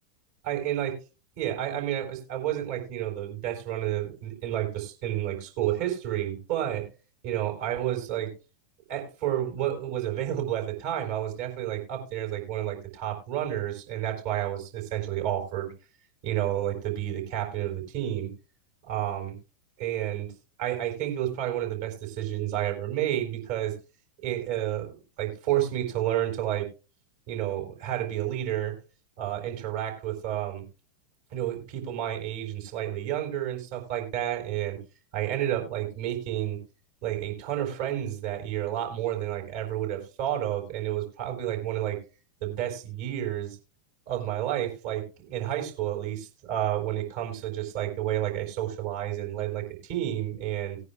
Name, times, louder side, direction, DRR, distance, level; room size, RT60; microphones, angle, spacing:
voice 1, 0.4-0.9 1.4-6.9 7.2-8.3 8.9-15.7 16.2-18.3 18.9-19.3 19.8-20.3 20.6-23.7 24.2-26.7 27.3-28.7 29.2-30.6 31.3-34.8 35.1-36.6 37.0-42.0 42.4-43.6 44.1-50.8, right 12 dB, 50° right, 2 dB, 4.8 m, -30 dB
19.5 x 9.6 x 2.4 m, 0.33 s
figure-of-eight pair, 90°, 0 cm